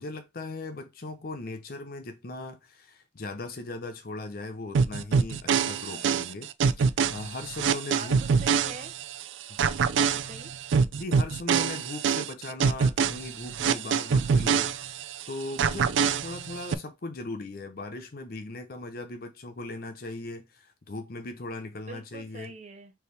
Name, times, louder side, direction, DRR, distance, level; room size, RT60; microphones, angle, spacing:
voice 1, 0.0-6.5 6.8-8.2 9.5-9.8 11.0-22.5, left 2 dB, 50° left, 0.6 m, -38 dB
sound 1, 4.7-9.2 9.6-15.2 15.6-16.7, right 6 dB, 80° right, 0.4 m, -25 dB
voice 2, 5.9-6.3 7.9-8.9 9.9-10.5 21.9-22.9, right 3 dB, 40° right, 0.9 m, -44 dB
4.5 x 3.4 x 3.2 m
head